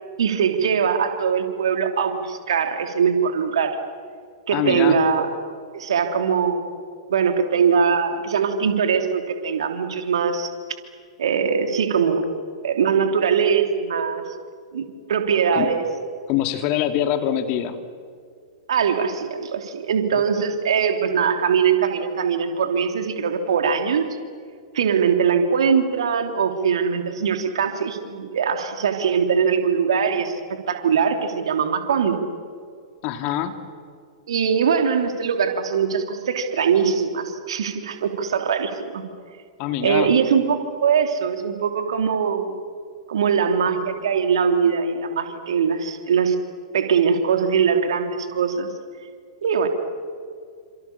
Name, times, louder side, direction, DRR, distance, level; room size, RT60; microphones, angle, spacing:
voice 1, 0.2-3.8 4.5-5.3 5.7-6.7 7.1-10.5 11.2-12.3 12.6-14.2 14.7-15.8 18.7-24.0 24.7-32.2 34.3-39.0 39.8-42.6 43.1-46.3 46.7-48.7 49.4-49.7, right 6 dB, 60° right, 6 dB, 3.2 m, -21 dB
voice 2, 4.5-5.0 15.5-15.7 16.3-17.8 33.0-33.6 39.6-40.1, left 11 dB, 40° left, 8 dB, 2.6 m, -24 dB
29.0 x 26.5 x 7.3 m, 2.2 s
figure-of-eight pair, 105°, 3 cm